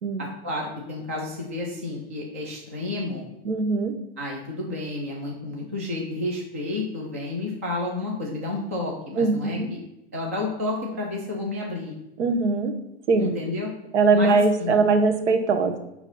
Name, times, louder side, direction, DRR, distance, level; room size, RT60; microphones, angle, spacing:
voice 1, 0.2-3.3 4.2-9.8 10.1-11.9 13.2-13.7 14.1-14.8, left 2 dB, 15° right, -1 dB, 0.3 m, -31 dB
voice 2, 3.4-3.9 9.2-9.7 12.2-12.7 13.1-13.3 13.9-15.8, right 3 dB, 85° right, 7 dB, 1.1 m, -21 dB
8.6 x 3.0 x 5.4 m, 0.88 s
supercardioid pair, 175°, 34 cm